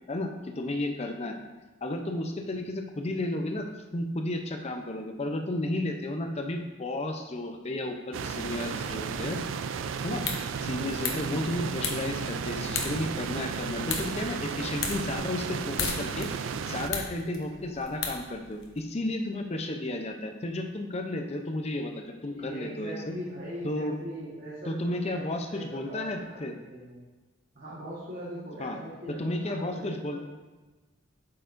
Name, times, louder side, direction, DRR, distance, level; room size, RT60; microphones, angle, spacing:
voice 1, 0.1-1.3 1.8-3.6 3.9-9.4 10.0-10.3 10.6-23.1 23.6-23.9 24.7-26.5 28.6-28.8 29.1-30.2, left 1 dB, 35° left, 4 dB, 0.6 m, -33 dB
sound 1, 8.1-16.9, right 6 dB, 75° right, 0.4 m, -34 dB
sound 2, 10.1-18.8, left 5 dB, 75° left, 0.9 m, -38 dB
voice 2, 22.3-27.0 27.5-30.2, equal, 45° right, -8 dB, 1.4 m, -41 dB
8.2 x 5.7 x 2.6 m, 1.2 s
head